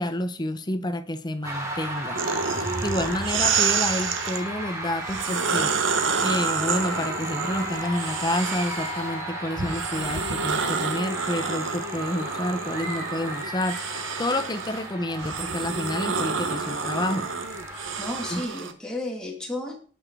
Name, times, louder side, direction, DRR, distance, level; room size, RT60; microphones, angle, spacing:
voice 1, 0.0-2.2 2.8-5.7 6.2-13.9 14.2-17.3 18.3-18.4, left 1 dB, 20° left, 10 dB, 0.9 m, -29 dB
sound 1, 1.4-18.4, right 1 dB, 15° right, 3.0 m, -34 dB
sound 2, 2.2-4.4 5.0-9.1 9.6-18.7, right 5 dB, 80° right, 1.1 m, -29 dB
voice 2, 18.0-19.8, left 1 dB, 5° left, 0 dB, 2.3 m, -33 dB
18.0 x 6.1 x 4.7 m, 0.41 s
head